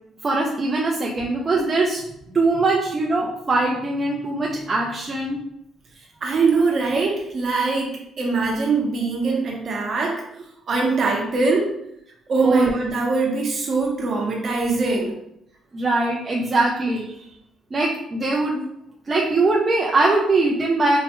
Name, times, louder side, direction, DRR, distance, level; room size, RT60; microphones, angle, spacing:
voice 1, 0.2-2.0 2.3-5.4 12.4-12.7 15.7-17.3 17.7-18.7 19.1-21.0, right 2 dB, 20° right, -3 dB, 0.4 m, -21 dB
voice 2, 6.2-10.2 10.7-11.7 12.3-15.1, right 3 dB, 40° right, -1 dB, 0.8 m, -22 dB
4.6 x 2.1 x 2.9 m, 0.78 s
cardioid pair, 170°, 0 cm